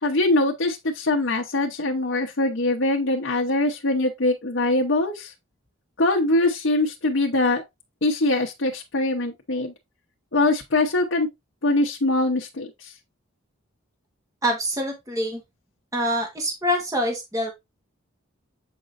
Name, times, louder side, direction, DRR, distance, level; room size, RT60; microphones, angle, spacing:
voice 1, 0.0-5.3 6.0-7.6 8.0-9.7 10.3-11.3 11.6-12.9, left 2 dB, 60° left, 0.9 m, -23 dB
voice 2, 14.4-15.4 15.9-17.5, equal, 15° right, 1.4 m, -25 dB
7.5 x 5.2 x 2.6 m
head